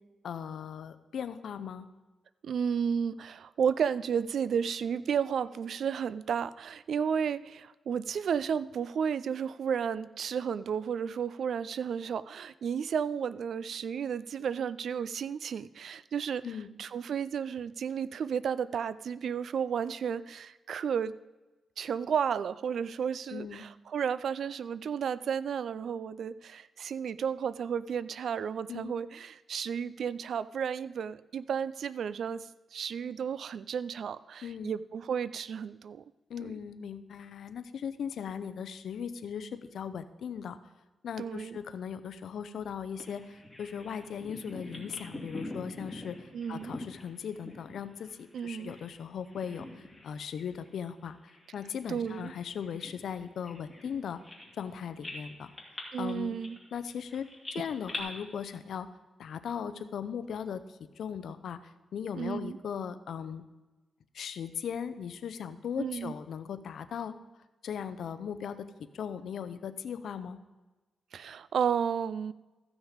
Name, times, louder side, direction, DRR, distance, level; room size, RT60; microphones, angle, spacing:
voice 1, 0.2-1.9 16.4-16.7 23.3-23.6 28.7-28.9 34.4-34.7 36.3-40.6 41.0-46.2 46.5-51.2 51.5-54.2 54.6-55.5 56.0-56.4 56.7-58.9 59.2-63.4 64.1-67.1 67.6-68.6 68.9-70.4, left 7 dB, 75° left, 12 dB, 0.6 m, -38 dB
voice 2, 2.4-16.4 16.8-21.2 21.8-36.0 36.4-36.5 41.2-41.6 46.3-46.7 48.3-48.7 51.9-52.3 55.9-56.6 62.1-62.6 65.8-66.1 71.1-72.3, right 7 dB, 70° right, 17 dB, 0.3 m, -32 dB
Bird vocalization bird call bird song, 43.0-49.0 49.2-50.1 50.5-50.7 51.3-54.7 55.0-58.0, left 2 dB, 10° left, 2.7 m, -45 dB
14.0 x 6.2 x 5.0 m, 1.2 s
cardioid pair, 105°, 0 cm